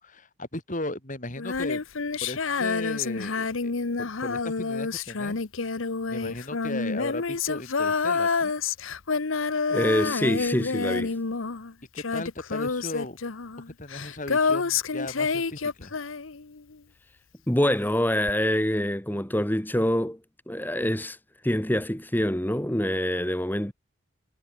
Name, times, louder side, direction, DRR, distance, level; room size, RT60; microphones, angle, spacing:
voice 1, 0.0-1.8 2.2-3.7 4.0-5.4 6.1-8.5 11.9-13.2 13.8-16.0, left 1 dB, 40° left, 3.9 m, -36 dB
Female singing, 1.4-16.7 18.3-18.4, left 4 dB, 75° left, 1.0 m, -28 dB
voice 2, 9.7-11.2 17.5-20.2 20.5-21.2 21.4-23.7, equal, 10° left, 2.1 m, -25 dB
head